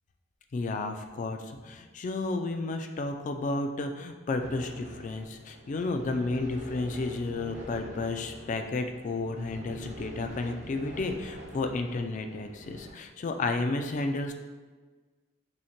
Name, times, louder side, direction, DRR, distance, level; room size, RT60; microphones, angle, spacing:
voice 1, 0.5-1.4 1.6-14.3, left 3 dB, 40° left, 5 dB, 0.3 m, -32 dB
sound 1, 4.4-12.9, right 1 dB, 35° right, 0.7 m, -45 dB
5.4 x 2.1 x 2.9 m, 1.4 s
head